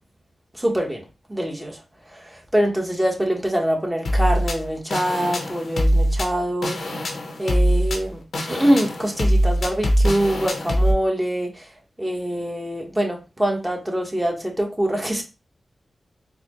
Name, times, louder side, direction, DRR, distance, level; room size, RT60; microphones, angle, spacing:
voice 1, 0.5-1.0 1.3-1.8 2.1-6.8 7.4-8.2 8.5-11.6 12.0-15.2, right 1 dB, 10° right, 1.1 m, -24 dB
sound 1, 4.1-10.9, equal, 75° left, 0.7 m, -22 dB
4.0 x 2.1 x 3.0 m
cardioid pair, 50°, 0 cm